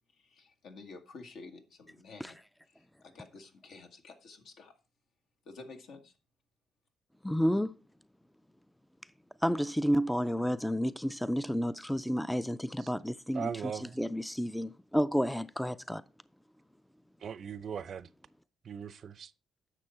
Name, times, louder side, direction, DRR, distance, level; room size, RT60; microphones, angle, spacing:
voice 1, 0.1-2.4 2.7-4.8 5.4-6.1, left 3 dB, 75° left, 1.7 m, -51 dB
voice 2, 7.2-7.7 9.4-13.5 14.0-16.0, equal, 5° left, 0.4 m, -30 dB
voice 3, 13.3-14.0 17.2-18.1 18.6-19.3, right 7 dB, 55° right, 0.5 m, -39 dB
9.9 x 6.6 x 4.3 m
cardioid pair, 90°, 0 cm